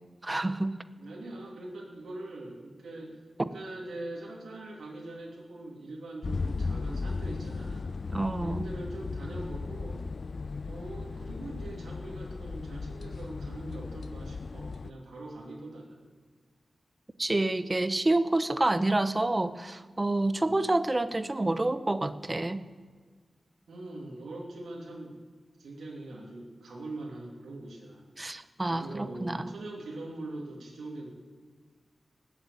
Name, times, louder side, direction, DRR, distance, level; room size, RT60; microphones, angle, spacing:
voice 1, 0.2-0.8 3.4-3.5 8.1-8.7 17.2-22.6 28.2-29.5, right 2 dB, 30° right, 12 dB, 0.9 m, -28 dB
voice 2, 1.0-7.9 8.4-10.0 10.7-16.1 20.4-20.7 23.7-25.2 25.6-28.0 28.7-31.1, right 2 dB, 90° right, -2 dB, 3.0 m, -42 dB
sound 1, 6.2-14.9, left 4 dB, 60° left, 0.4 m, -36 dB
19.5 x 8.1 x 8.6 m, 1.5 s
cardioid pair, 55°, 0 cm